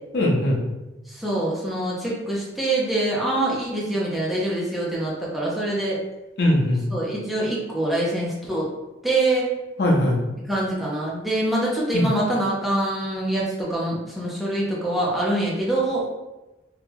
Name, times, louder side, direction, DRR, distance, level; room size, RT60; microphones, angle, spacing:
voice 1, 0.1-0.6 6.4-6.8 9.8-10.2 11.9-12.1, left 1 dB, 60° left, -2 dB, 0.7 m, -20 dB
voice 2, 1.1-6.0 6.9-8.7 9.0-9.4 10.5-16.1, right 1 dB, ahead, -6 dB, 0.6 m, -25 dB
2.8 x 2.3 x 3.5 m, 1.0 s
head